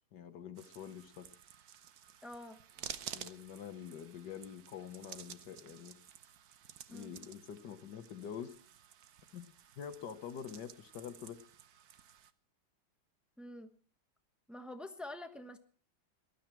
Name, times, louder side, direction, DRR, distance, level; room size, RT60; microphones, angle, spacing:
voice 1, 0.1-1.3 3.1-6.0 6.9-8.5 9.3-11.4, left 8 dB, 60° left, 9 dB, 1.6 m, -46 dB
sound 1, 0.6-12.3, right 9 dB, 60° right, 1.0 m, -52 dB
voice 2, 2.2-2.6 6.9-7.1 13.4-13.7 14.5-15.6, left 1 dB, ahead, 6 dB, 0.4 m, -46 dB
19.0 x 12.5 x 4.5 m, 0.43 s
omnidirectional pair, 2.3 m